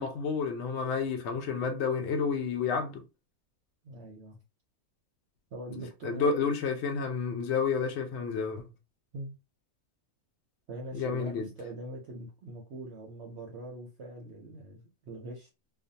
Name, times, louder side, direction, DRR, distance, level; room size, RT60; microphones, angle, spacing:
voice 1, 0.0-3.0 5.7-8.7 10.9-11.5, left 5 dB, 65° left, 0.7 m, -30 dB
voice 2, 3.8-4.4 5.5-6.4 9.1-9.4 10.7-15.5, right 2 dB, 60° right, 0.7 m, -42 dB
2.5 x 2.2 x 2.6 m
omnidirectional pair, 1.6 m